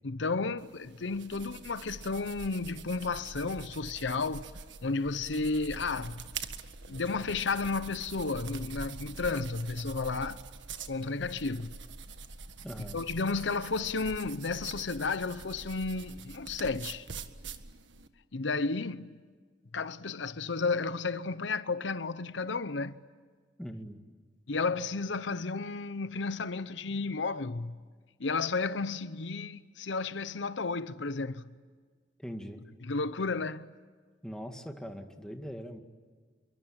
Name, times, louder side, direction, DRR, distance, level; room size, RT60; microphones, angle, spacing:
voice 1, 0.0-4.5 4.8-6.2 6.9-10.4 10.9-11.7 12.9-17.1 18.3-19.2 19.7-23.0 24.5-27.7 28.2-31.5 32.8-33.7, left 4 dB, 75° left, 0.8 m, -32 dB
sound 1, 0.6-18.1, right 4 dB, 75° right, 1.7 m, -45 dB
voice 2, 12.6-13.0 23.6-24.0 32.2-32.6 34.2-35.8, equal, 5° left, 2.2 m, -41 dB
28.5 x 23.5 x 8.9 m
head